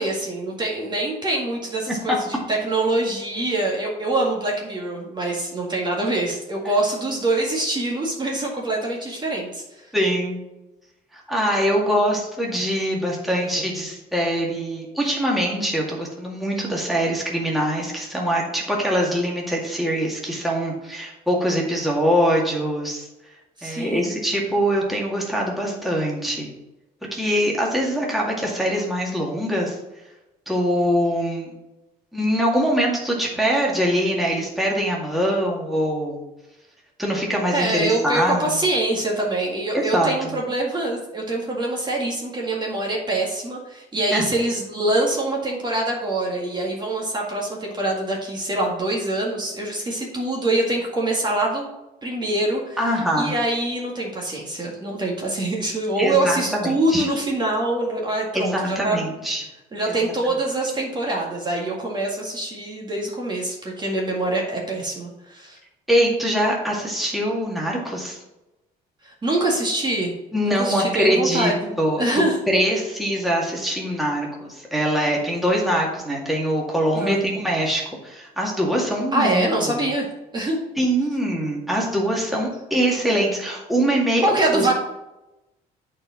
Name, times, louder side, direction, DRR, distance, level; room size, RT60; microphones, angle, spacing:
voice 1, 0.0-9.9 23.6-24.1 37.5-51.6 52.0-52.8 53.2-59.0 59.7-65.6 69.0-70.1 70.4-72.4 76.9-77.2 79.1-80.1 80.3-80.6 84.2-84.7, right 2 dB, 25° right, -2 dB, 1.9 m, -24 dB
voice 2, 9.9-10.4 11.1-23.1 23.6-26.5 27.1-29.8 30.5-31.5 32.1-36.2 37.0-38.6 39.9-40.4 44.1-44.2 52.8-53.3 56.0-57.1 58.3-59.4 59.9-60.0 65.9-68.2 70.3-71.5 71.8-79.5 80.8-84.7, equal, ahead, -3 dB, 2.0 m, -23 dB
8.6 x 4.5 x 5.8 m, 0.98 s
cardioid pair, 110°, 17 cm